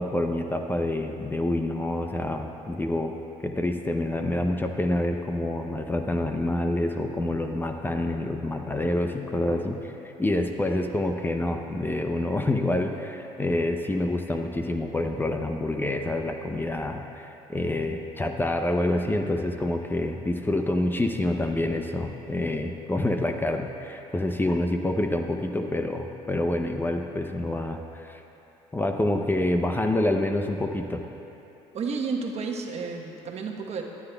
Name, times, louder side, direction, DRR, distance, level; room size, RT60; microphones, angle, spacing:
voice 1, 0.0-3.1 3.4-9.9 10.2-28.2 28.7-31.0, left 1 dB, 15° left, 4 dB, 0.6 m, -27 dB
voice 2, 31.7-33.8, right 4 dB, 50° right, 1 dB, 1.1 m, -31 dB
17.5 x 9.8 x 2.3 m, 2.9 s
supercardioid pair, 80°, 14 cm